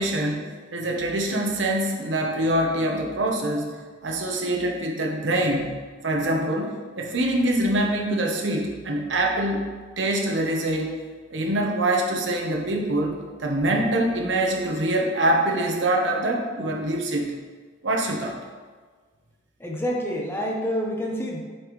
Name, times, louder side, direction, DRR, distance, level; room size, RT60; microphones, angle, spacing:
voice 1, 0.0-3.7 4.0-5.8 6.0-9.7 10.0-11.0 11.3-17.3 17.8-18.4, right 1 dB, 70° right, 1 dB, 1.0 m, -24 dB
voice 2, 19.6-21.4, equal, 10° left, -1 dB, 0.7 m, -27 dB
7.5 x 5.3 x 3.1 m, 1.5 s
head